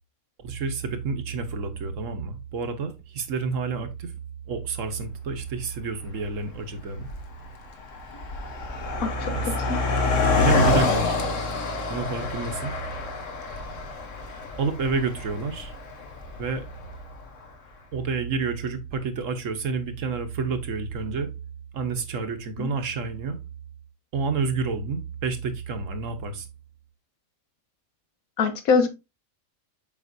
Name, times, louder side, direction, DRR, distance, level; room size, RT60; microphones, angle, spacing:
voice 1, 0.4-4.1 4.5-7.1 9.3-9.5 10.4-11.2 11.9-12.7 14.6-15.7 16.4-16.7 17.9-21.3 21.7-23.4 24.1-26.5, right 4 dB, 65° right, 1.3 m, -29 dB
Car passing by, 5.4-5.5 6.3-6.5 6.8-17.2, left 3 dB, 65° left, 1.4 m, -27 dB
voice 2, 9.0-9.9 22.6-22.7 28.4-28.9, left 5 dB, 85° left, 1.5 m, -24 dB
7.4 x 5.2 x 2.6 m
omnidirectional pair, 1.4 m